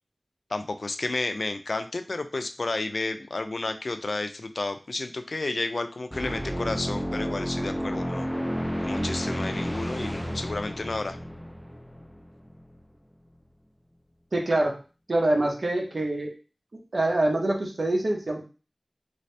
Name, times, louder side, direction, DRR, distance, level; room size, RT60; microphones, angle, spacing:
voice 1, 0.5-8.3 8.8-11.2, left 2 dB, 85° left, 8 dB, 0.4 m, -31 dB
sound 1, 6.1-12.8, equal, 5° left, 0.3 m, -31 dB
voice 2, 14.3-14.7 15.1-16.3 16.7-18.4, right 1 dB, 80° right, 1 dB, 0.9 m, -25 dB
3.2 x 2.7 x 3.2 m, 0.34 s
wide cardioid pair, 55°, 0 cm